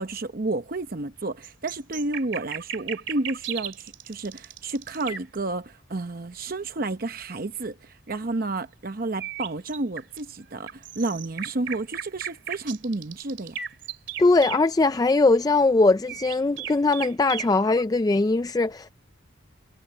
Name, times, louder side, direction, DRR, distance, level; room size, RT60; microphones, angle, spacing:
voice 1, 0.0-13.6, right 2 dB, 45° right, 0.8 m, -31 dB
sound 1, 1.4-5.4 9.2-10.2 10.7-14.6 16.1-17.8, right 9 dB, 60° right, 2.4 m, -35 dB
voice 2, 14.2-18.9, left 3 dB, 20° left, 0.3 m, -21 dB
head